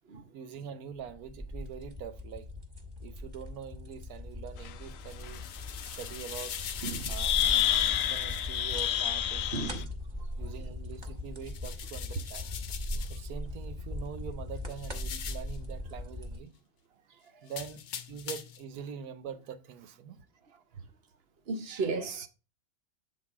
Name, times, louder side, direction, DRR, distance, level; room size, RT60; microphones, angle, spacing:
voice 1, 0.3-2.5 3.0-5.4 5.8-6.6 7.1-7.3 7.7-9.8 10.4-12.5 13.1-16.5 17.4-20.2, right 7 dB, 85° right, 1.3 m, -44 dB
sound 1, 1.0-16.4, left 1 dB, 20° right, 1.1 m, -40 dB
sound 2, 4.6-4.7 5.2-5.4 6.8-6.9 7.2-9.8, left 11 dB, 70° left, 0.9 m, -28 dB
sound 3, 4.9-9.1 11.4-13.3 14.7-15.6 17.5-18.7, left 8 dB, 90° left, 1.3 m, -42 dB
voice 2, 6.8-7.1 9.5-9.8 21.5-22.3, right 4 dB, 50° right, 0.9 m, -34 dB
8.0 x 4.0 x 4.7 m
omnidirectional pair, 1.5 m